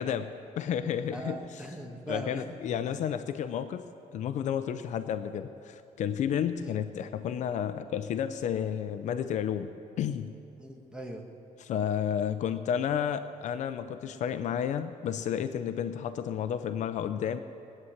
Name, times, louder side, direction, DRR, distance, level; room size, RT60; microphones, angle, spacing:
voice 1, 0.0-1.6 2.1-3.8 4.1-9.7 10.0-10.3 11.6-17.4, left 8 dB, 60° left, 10 dB, 0.6 m, -31 dB
voice 2, 1.1-3.0 6.6-6.7 10.6-11.2, right 1 dB, 5° right, 1 dB, 1.4 m, -40 dB
19.5 x 9.6 x 7.3 m, 2.9 s
cardioid pair, 170°, 14 cm